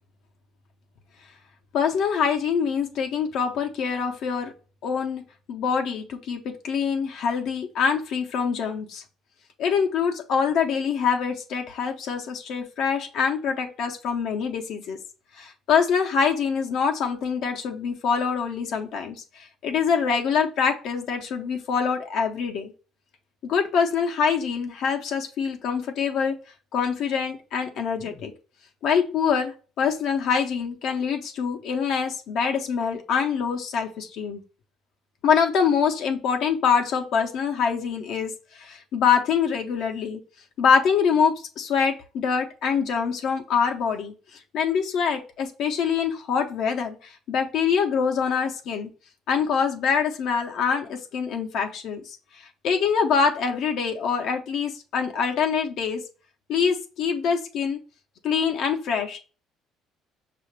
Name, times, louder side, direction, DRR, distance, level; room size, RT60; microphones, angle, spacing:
voice 1, 1.7-4.5 4.8-5.2 5.5-9.0 9.6-15.0 15.4-22.7 23.4-26.3 26.7-28.3 28.8-34.4 35.2-40.2 40.6-48.9 49.3-56.0 56.5-57.8 58.2-59.2, left 6 dB, 60° left, 3 dB, 0.6 m, -25 dB
5.6 x 2.5 x 3.1 m, 0.36 s
cardioid pair, 135°, 0 cm